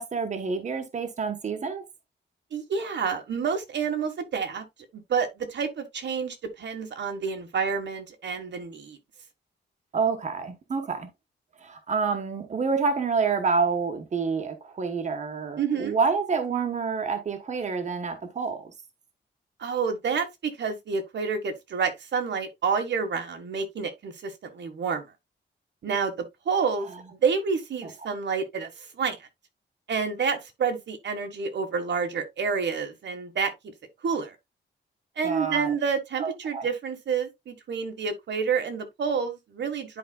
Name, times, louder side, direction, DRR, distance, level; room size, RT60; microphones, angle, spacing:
voice 1, 0.0-1.8 9.9-11.1 11.6-18.7 27.8-27.9 35.2-35.7 36.2-36.7, right 5 dB, 40° right, 1.2 m, -28 dB
voice 2, 2.5-4.6 4.9-9.0 15.6-16.0 19.6-25.1 25.8-29.2 29.9-33.7 34.0-34.3 35.2-40.0, right 5 dB, 75° right, 1.5 m, -29 dB
10.5 x 4.9 x 2.3 m
wide cardioid pair, 165°, 19 cm